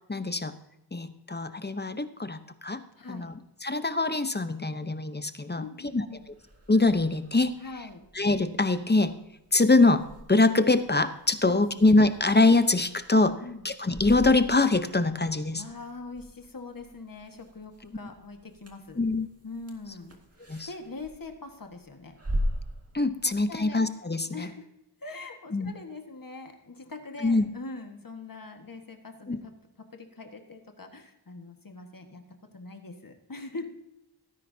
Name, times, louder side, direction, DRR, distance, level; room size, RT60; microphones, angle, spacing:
voice 1, 0.1-0.6 0.9-2.8 3.1-3.3 3.6-5.6 5.9-6.0 6.7-7.5 8.2-9.1 9.5-13.4 13.6-15.6 19.0-19.3 20.5-20.7 22.9-24.5 25.5-25.7 27.2-27.5 29.3-29.4, left 2 dB, 25° left, 11 dB, 0.8 m, -24 dB
voice 2, 3.0-3.3 5.6-6.2 7.6-8.0 11.4-11.8 13.4-13.7 15.5-19.0 19.4-20.1 20.7-22.2 23.2-23.8 24.2-24.7 25.0-29.5 29.9-32.2 32.5-33.7, left 3 dB, 55° left, 5 dB, 1.6 m, -42 dB
sound 1, 6.2-23.7, equal, 35° right, 2.1 m, -41 dB
17.0 x 9.9 x 2.8 m, 0.88 s
wide cardioid pair, 60°, 40 cm